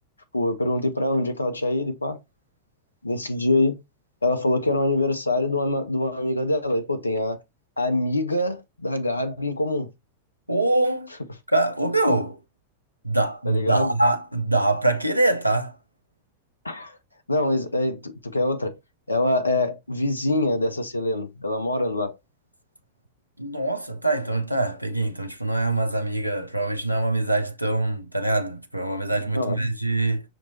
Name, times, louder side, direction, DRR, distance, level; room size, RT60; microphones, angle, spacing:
voice 1, 0.3-2.2 3.0-3.8 4.2-7.4 7.8-9.9 13.5-13.9 16.6-17.0 17.3-18.7 19.1-22.2 29.3-29.7, left 2 dB, 80° left, 0.5 m, -24 dB
voice 2, 10.5-11.1 11.5-12.4 13.0-15.8 23.4-30.2, right 2 dB, 90° right, 0.5 m, -24 dB
5.9 x 2.8 x 2.7 m
figure-of-eight pair, 90°, 0 cm